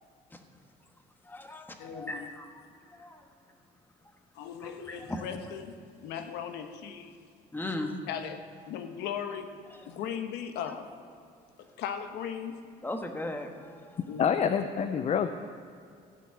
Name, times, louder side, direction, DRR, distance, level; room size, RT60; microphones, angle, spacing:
voice 1, 1.2-3.2 4.6-5.3 7.5-7.9 9.7-9.8 12.8-14.0, left 1 dB, 10° left, 4 dB, 1.3 m, -38 dB
voice 2, 1.8-2.3 4.3-7.2 8.1-9.6 9.9-10.9 11.6-12.6 14.1-14.4, left 8 dB, 85° left, 7 dB, 1.0 m, -38 dB
voice 3, 14.2-15.3, left 7 dB, 40° left, 9 dB, 0.6 m, -26 dB
15.0 x 6.2 x 8.1 m, 2.3 s
cardioid pair, 110°, 17 cm